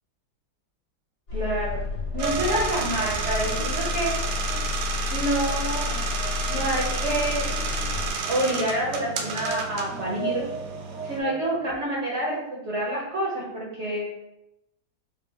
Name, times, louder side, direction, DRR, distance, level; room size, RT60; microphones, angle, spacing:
sound 1, 1.3-8.1, left 5 dB, 40° left, 1.4 m, -31 dB
voice 1, 1.3-1.8 2.1-4.1 5.1-5.9 6.5-7.5 8.3-10.5 11.0-14.1, right 1 dB, 50° right, -5 dB, 0.8 m, -27 dB
sound 2, 2.1-11.8, right 4 dB, 55° left, 1.2 m, -38 dB
sound 3, 2.2-11.2, right 5 dB, 80° right, 1.3 m, -31 dB
5.2 x 2.2 x 3.4 m, 0.85 s
omnidirectional pair, 2.1 m